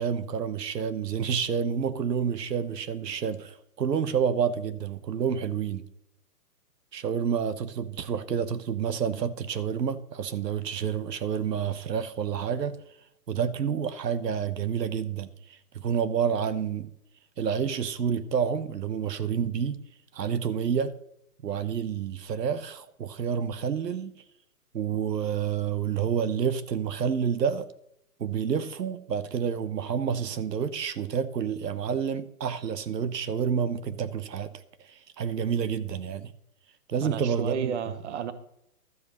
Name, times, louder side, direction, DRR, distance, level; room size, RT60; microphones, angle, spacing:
voice 1, 0.0-5.8 6.9-12.8 13.3-16.9 17.4-19.8 20.1-20.9 21.4-24.1 24.7-27.7 28.2-34.5 34.8-36.3 36.9-37.7, right 7 dB, 85° right, 1.1 m, -29 dB
voice 2, 37.0-38.3, right 7 dB, 45° right, 1.1 m, -32 dB
12.5 x 7.8 x 5.5 m
hypercardioid pair, 155°, 48 cm